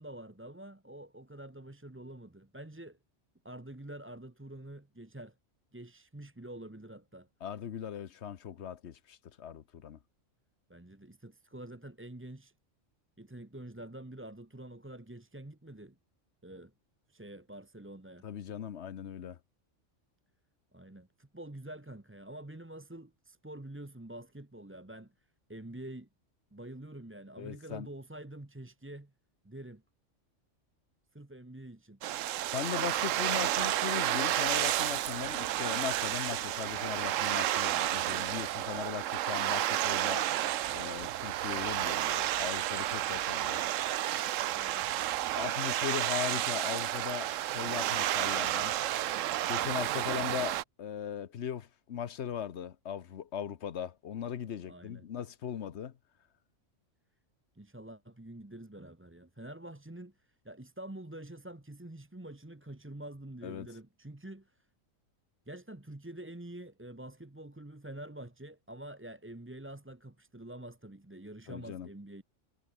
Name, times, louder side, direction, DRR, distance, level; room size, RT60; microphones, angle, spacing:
voice 1, 0.0-3.0 3.4-5.4 5.7-7.3 10.7-12.5 13.2-16.0 16.4-16.7 17.1-18.3 20.7-26.1 26.5-29.1 29.4-29.8 31.1-32.0 44.5-44.9 54.7-55.0 57.5-64.7 65.5-72.2, right 1 dB, 10° right, 1.1 m, -47 dB
voice 2, 7.4-10.0 18.2-19.4 27.4-27.9 32.5-40.2 40.7-43.6 45.4-48.7 49.5-55.9 63.4-63.7 71.5-71.9, left 8 dB, 65° left, 1.2 m, -39 dB
sound 1, 32.0-50.6, right 13 dB, 85° right, 1.0 m, -31 dB
omnidirectional pair, 1.3 m